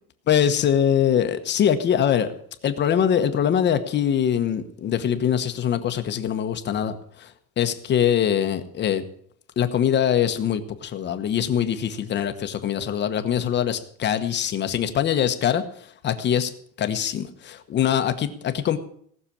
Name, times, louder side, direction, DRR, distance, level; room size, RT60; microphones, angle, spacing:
voice 1, 0.3-2.3 2.6-7.3 7.6-9.0 9.6-15.6 16.0-16.5 16.8-18.8, left 9 dB, 35° left, 9 dB, 1.1 m, -23 dB
18.0 x 6.8 x 8.5 m, 0.63 s
cardioid pair, 165°, 33 cm